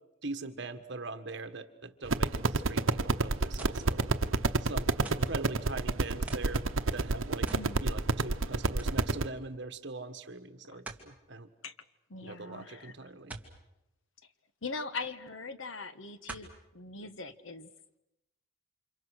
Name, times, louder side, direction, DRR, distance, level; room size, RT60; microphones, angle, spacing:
voice 1, 0.2-4.0 4.6-11.5 12.2-13.3, right 3 dB, 55° right, 9 dB, 1.6 m, -42 dB
sound 1, 2.1-9.3, right 3 dB, 80° right, 1.0 m, -28 dB
sound 2, 3.6-3.9 5.0-5.4 6.3-6.6 7.5-7.7 8.1-8.2 8.8-9.0 10.9-11.1 13.3-13.5 15.0-15.1 16.3-16.6 17.3-17.4, right 2 dB, 5° right, 2.4 m, -44 dB
voice 2, 7.5-7.9 10.6-10.8 11.6-11.7 12.1-12.9 14.6-17.7, left 4 dB, 70° left, 12 dB, 1.4 m, -41 dB
29.5 x 27.0 x 6.5 m, 0.91 s
head